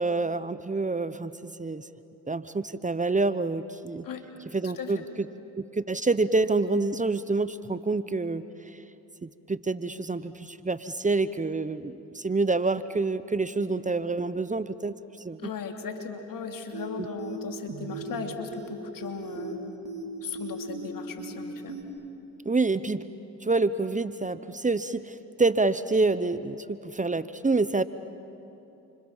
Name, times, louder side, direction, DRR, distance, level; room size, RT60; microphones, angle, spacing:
voice 1, 0.0-1.9 2.3-4.1 4.5-5.3 5.6-8.8 9.2-15.4 17.0-17.1 22.4-23.0 23.4-27.8, right 3 dB, 20° right, 14 dB, 1.0 m, -27 dB
voice 2, 4.6-5.0 15.4-19.8 20.2-21.8, left 5 dB, 60° left, 4 dB, 3.0 m, -37 dB
sound 1, 16.7-16.9 17.2-17.4 17.7-18.2 18.5-18.7 19.0-19.5 19.9-20.0 20.4-20.9 21.2-21.4 21.7-21.8, right 4 dB, 70° right, 3.6 m, -37 dB
29.5 x 26.0 x 7.4 m, 2.8 s
supercardioid pair, 55°, 37 cm